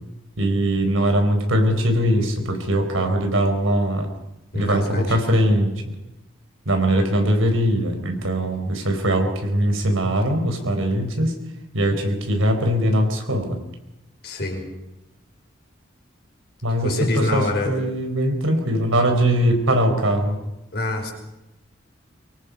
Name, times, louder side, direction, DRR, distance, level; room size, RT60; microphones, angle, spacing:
voice 1, 0.4-4.1 4.5-6.0 6.7-11.3 11.7-13.6 16.6-20.4, right 1 dB, 85° right, 5 dB, 4.4 m, -21 dB
voice 2, 4.5-5.2 14.2-14.7 16.8-17.8 20.7-21.1, left 2 dB, 50° left, 2 dB, 5.4 m, -25 dB
25.0 x 23.0 x 5.4 m, 0.92 s
head